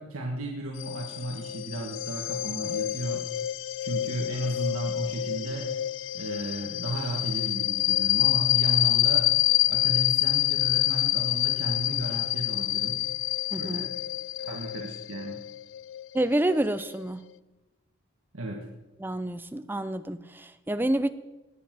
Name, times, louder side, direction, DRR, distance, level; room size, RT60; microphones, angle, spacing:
voice 1, 0.0-3.2 3.8-5.7 6.1-9.3 9.7-13.0 13.6-13.9 14.4-15.4 18.3-18.6, right 1 dB, 80° right, 1.5 m, -34 dB
sound 1, 0.8-17.0, left 15 dB, 60° left, 0.3 m, -27 dB
voice 2, 13.5-13.9 16.1-17.2 19.0-21.1, right 1 dB, 10° right, 0.4 m, -28 dB
18.5 x 6.9 x 6.1 m
head